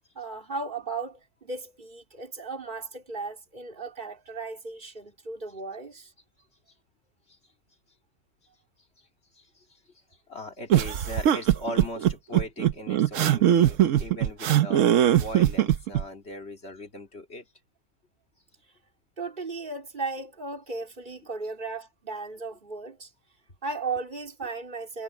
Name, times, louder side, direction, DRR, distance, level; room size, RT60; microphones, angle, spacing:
voice 1, 0.2-6.1 19.2-23.1 23.6-25.0, right 3 dB, 35° right, 3.7 m, -36 dB
voice 2, 9.3-9.8 10.3-17.5, left 1 dB, 45° left, 3.3 m, -39 dB
sound 1, 10.7-16.0, right 11 dB, 65° right, 1.1 m, -21 dB
omnidirectional pair, 1.5 m